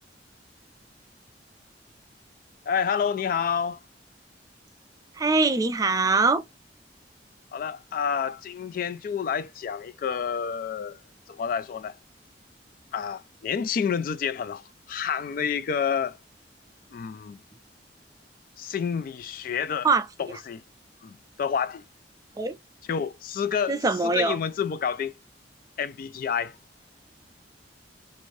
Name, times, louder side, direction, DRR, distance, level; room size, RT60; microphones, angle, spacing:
voice 1, 2.7-3.8 7.5-11.0 11.3-12.0 12.9-16.2 16.9-17.4 18.6-19.9 20.2-20.6 21.0-21.8 22.9-25.2 25.8-26.6, left 7 dB, 50° left, 0.3 m, -29 dB
voice 2, 5.2-6.4 19.8-20.0 22.4-22.6 23.7-24.4, right 3 dB, 20° right, 0.4 m, -22 dB
2.6 x 2.6 x 3.1 m
head